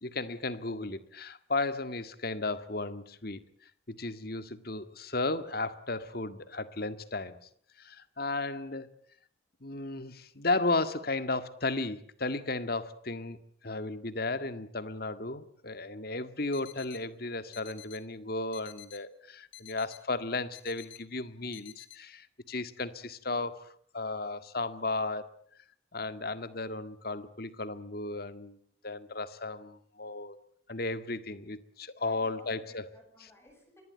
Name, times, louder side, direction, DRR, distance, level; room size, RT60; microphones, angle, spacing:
voice 1, 0.0-3.4 3.9-7.4 7.8-9.0 9.6-25.3 25.9-28.6 28.8-30.4 30.7-32.9, left 2 dB, 50° left, 11 dB, 1.9 m, -34 dB
sound 1, 16.5-17.0 17.5-18.0 18.5-19.0 19.5-20.0 20.5-21.0 21.5-22.0, left 15 dB, 80° left, 3.5 m, -50 dB
voice 2, 32.0-33.8, left 1 dB, 15° left, 3 dB, 7.3 m, -58 dB
25.5 x 21.5 x 9.0 m, 0.63 s
head